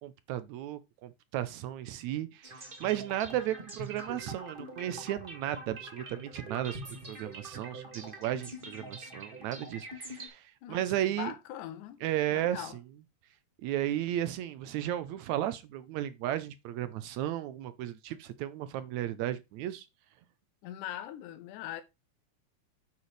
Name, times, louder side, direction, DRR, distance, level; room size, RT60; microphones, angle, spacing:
voice 1, 0.0-6.8 7.1-11.3 12.0-12.7 13.6-19.9, right 12 dB, 75° right, 1.8 m, -34 dB
sound 1, 2.4-10.3, right 1 dB, 20° right, 1.6 m, -44 dB
voice 2, 10.6-12.0 12.3-12.8 20.6-21.8, left 12 dB, 80° left, 2.3 m, -41 dB
8.3 x 7.3 x 3.2 m
omnidirectional pair, 3.7 m